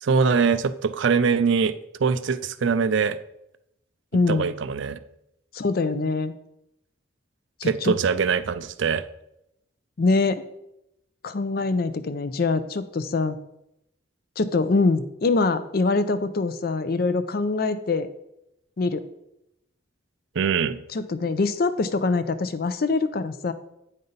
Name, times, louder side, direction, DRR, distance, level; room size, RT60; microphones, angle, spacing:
voice 1, 0.0-1.7 2.0-3.2 4.3-5.0 7.6-9.0 20.4-20.8, right 5 dB, 65° right, 13 dB, 0.4 m, -22 dB
voice 2, 4.1-4.5 5.5-6.3 7.6-7.9 10.0-10.4 11.2-13.4 14.4-18.1 18.8-19.0 20.9-23.5, left 3 dB, 50° left, 12 dB, 0.5 m, -24 dB
8.7 x 5.4 x 4.0 m, 0.83 s
head